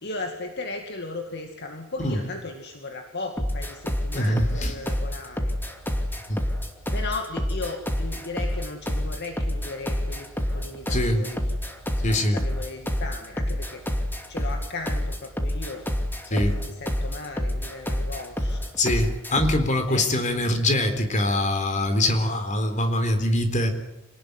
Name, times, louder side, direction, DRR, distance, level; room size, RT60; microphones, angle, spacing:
voice 1, 0.0-5.5 6.0-6.1 6.9-11.5 12.1-13.8 14.3-15.9 16.3-18.7 19.9-20.1, left 3 dB, 55° left, 4 dB, 2.3 m, -36 dB
sound 1, 3.4-19.7, equal, 10° left, 2.6 m, -28 dB
voice 2, 4.1-4.7 10.9-11.2 12.0-12.4 16.3-16.5 18.8-23.7, left 1 dB, 35° left, 7 dB, 3.9 m, -23 dB
27.5 x 19.0 x 9.7 m, 0.92 s
head